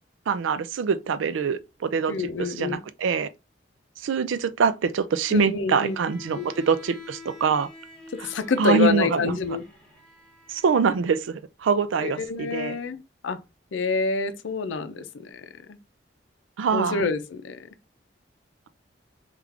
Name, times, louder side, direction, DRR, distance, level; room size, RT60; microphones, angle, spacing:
voice 1, 0.3-2.1 2.4-3.3 4.0-7.7 8.6-9.4 10.5-12.8 16.6-17.1, right 5 dB, 90° right, 0.4 m, -24 dB
voice 2, 2.1-2.8 5.3-6.0 6.3-6.5 8.2-9.6 12.0-13.4 13.7-15.8 16.7-17.7, left 4 dB, 85° left, 0.5 m, -27 dB
Bowed string instrument, 5.8-11.1, left 3 dB, 5° left, 1.0 m, -47 dB
3.5 x 2.4 x 3.3 m
head